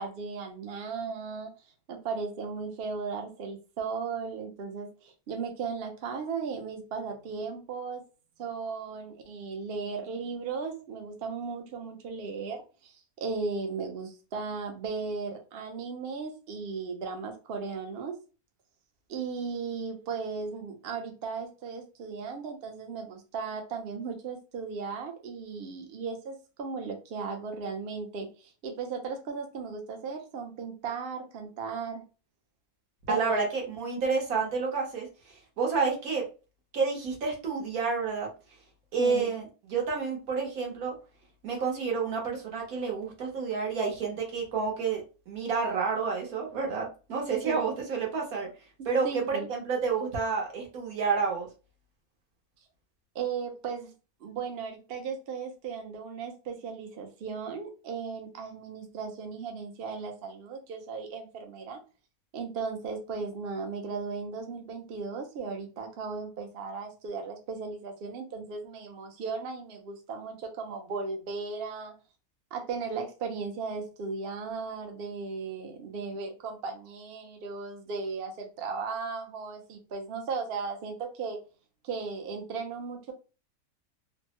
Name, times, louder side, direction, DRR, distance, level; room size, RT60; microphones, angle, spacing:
voice 1, 0.0-1.5 1.9-8.0 8.4-18.1 19.1-32.0 33.1-33.4 39.0-39.3 47.4-47.6 49.0-49.5 53.1-53.9 54.2-61.8 62.3-71.9 72.5-81.4 81.8-83.1, right 5 dB, 55° right, 0.7 m, -36 dB
voice 2, 33.1-36.3 36.7-38.3 38.9-40.9 41.4-48.5 48.8-51.5, right 5 dB, 75° right, 1.4 m, -29 dB
3.2 x 2.1 x 2.8 m
omnidirectional pair, 1.5 m